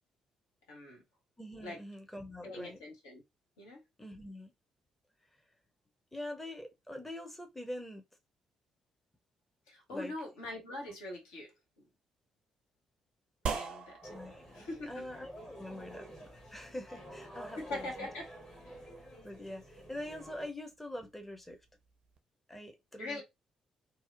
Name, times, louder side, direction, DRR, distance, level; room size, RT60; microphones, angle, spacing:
voice 1, 0.7-1.0 1.6-1.8 2.4-3.2 3.6-3.8 9.7-11.5 11.8-11.9 13.5-14.2 14.5-15.1 17.6-18.3 18.6-18.8 23.0-23.2, left 2 dB, 70° left, 0.7 m, -42 dB
voice 2, 1.4-2.8 4.0-4.5 6.1-8.0 9.9-10.1 14.1-18.1 19.2-21.6 22.5-23.2, left 1 dB, 10° left, 0.6 m, -44 dB
sound 1, 13.5-22.2, right 6 dB, 50° right, 0.4 m, -46 dB
sound 2, 14.0-20.5, right 1 dB, 30° left, 1.0 m, -50 dB
2.7 x 2.0 x 2.4 m
figure-of-eight pair, 40°, 2 cm